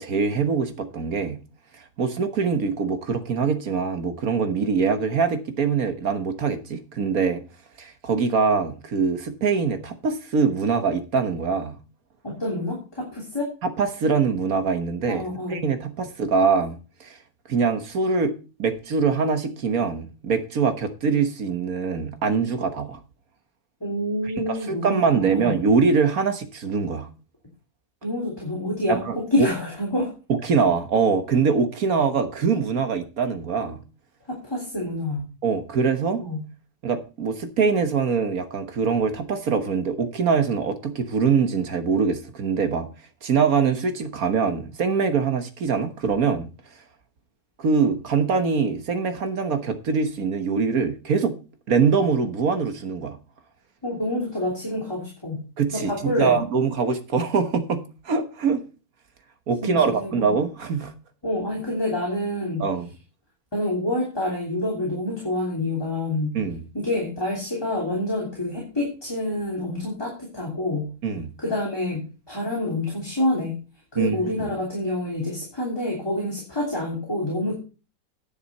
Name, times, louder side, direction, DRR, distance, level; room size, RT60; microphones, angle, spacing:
voice 1, 0.0-1.4 2.0-7.4 7.8-11.8 13.6-15.2 15.5-17.2 17.5-18.3 18.6-23.0 24.7-27.1 28.9-29.5 30.3-33.8 35.4-36.2 36.8-42.9 43.2-46.5 47.6-51.4 51.7-53.2 55.6-58.6 59.5-60.9 62.6-62.9 66.3-66.6 71.0-71.3 73.9-74.5, right 5 dB, 55° right, 1.6 m, -23 dB
voice 2, 12.2-13.5 15.1-15.6 23.8-25.6 28.0-30.1 34.3-35.3 36.2-36.5 53.8-55.4 55.7-56.4 59.6-60.2 61.2-62.7 63.5-66.4 66.7-70.9 71.4-73.6 73.9-77.6, left 1 dB, 15° left, 3.2 m, -27 dB
10.0 x 7.1 x 5.4 m
omnidirectional pair, 1.9 m